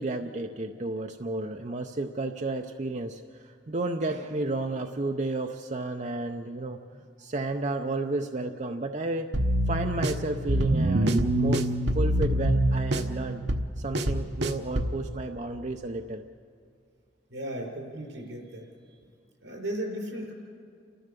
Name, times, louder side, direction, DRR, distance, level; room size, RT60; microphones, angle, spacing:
voice 1, 0.0-9.3 9.7-13.4 13.8-16.2, right 2 dB, 40° right, 4 dB, 0.6 m, -32 dB
sound 1, 9.3-15.0, right 1 dB, 65° right, 0.9 m, -25 dB
voice 2, 17.3-18.7 19.4-20.3, right 1 dB, 85° right, 0 dB, 5.2 m, -35 dB
30.0 x 14.0 x 6.9 m, 2.3 s
head